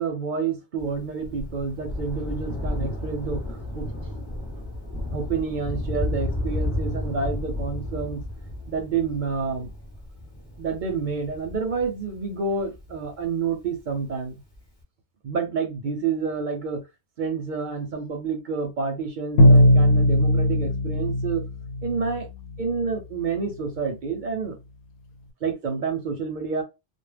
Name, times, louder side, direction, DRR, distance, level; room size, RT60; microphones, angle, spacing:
voice 1, 0.0-3.9 5.1-8.2 8.7-9.7 10.6-14.4 15.2-16.8 17.2-21.4 21.8-22.3 22.6-24.6 25.4-26.6, right 5 dB, 55° right, 0.6 m, -29 dB
Thunder, 0.8-13.7 14.5-14.6, left 1 dB, 25° left, 0.9 m, -32 dB
Bowed string instrument, 19.4-22.2, equal, 75° left, 0.8 m, -18 dB
2.2 x 2.1 x 3.2 m
omnidirectional pair, 1.2 m